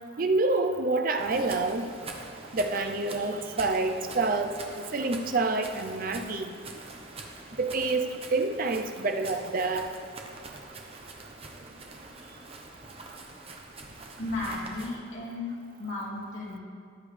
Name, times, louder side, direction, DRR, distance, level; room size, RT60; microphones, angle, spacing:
voice 1, 0.2-1.9 2.5-6.5 7.6-9.9, right 3 dB, 45° right, 6 dB, 0.6 m, -27 dB
sound 1, 1.2-14.9, right 3 dB, 30° right, 1.0 m, -44 dB
voice 2, 14.2-16.6, left 2 dB, 70° left, -6 dB, 2.9 m, -35 dB
13.5 x 10.5 x 3.3 m, 2.4 s
head